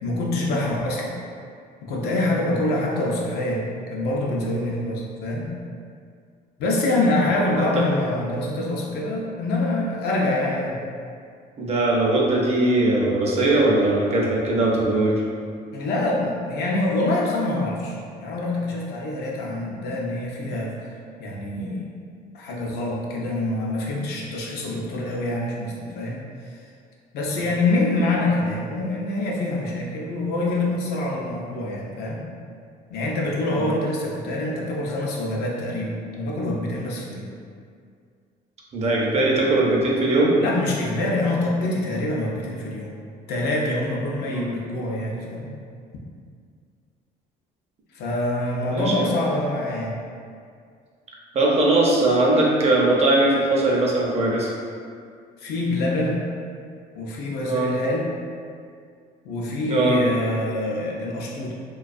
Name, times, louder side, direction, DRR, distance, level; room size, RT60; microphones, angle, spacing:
voice 1, 0.0-1.1 1.8-3.6 3.9-5.5 6.6-10.8 15.7-20.9 21.2-21.9 22.3-26.2 27.1-32.2 32.9-37.3 40.4-42.9 43.3-45.5 47.9-50.0 55.4-56.2 56.9-58.1 59.2-61.5, left 2 dB, 75° left, -2 dB, 0.5 m, -25 dB
voice 2, 11.6-15.2 33.6-33.7 38.7-40.3 44.2-44.5 48.7-49.1 51.3-54.5 57.4-57.7 59.7-60.0, right 2 dB, 40° right, -3 dB, 0.5 m, -20 dB
2.3 x 2.3 x 2.4 m, 2.2 s
cardioid pair, 110°, 17 cm